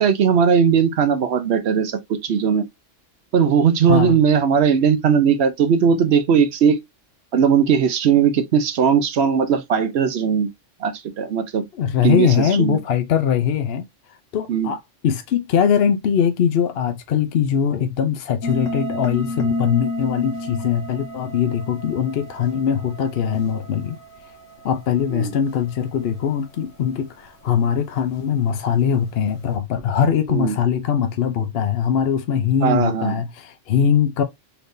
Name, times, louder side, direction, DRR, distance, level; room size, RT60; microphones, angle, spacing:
voice 1, 0.0-2.6 3.3-6.8 7.3-10.5 10.8-11.6 12.0-12.8 14.5-14.7 25.1-25.3 30.3-30.5 32.6-33.2, right 7 dB, 60° right, 0.9 m, -18 dB
voice 2, 11.8-13.9 14.3-14.8 15.0-24.0 24.6-34.2, left 8 dB, 60° left, 0.8 m, -21 dB
sound 1, 18.4-27.7, left 1 dB, 90° left, 1.2 m, -32 dB
4.2 x 3.4 x 2.6 m
omnidirectional pair, 1.3 m